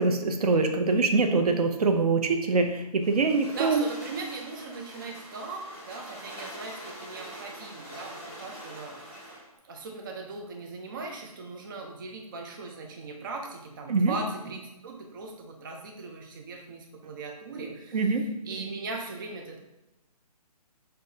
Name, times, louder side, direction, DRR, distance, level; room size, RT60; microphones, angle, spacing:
voice 1, 0.0-3.8 13.9-14.1 17.9-18.2, right 3 dB, 75° right, 5 dB, 0.6 m, -24 dB
sound 1, 3.0-9.5, equal, 5° right, 1.4 m, -44 dB
voice 2, 3.5-9.3 9.6-19.6, right 3 dB, 35° right, 2 dB, 0.4 m, -39 dB
5.4 x 2.6 x 2.7 m, 0.92 s
hypercardioid pair, 160°, 20 cm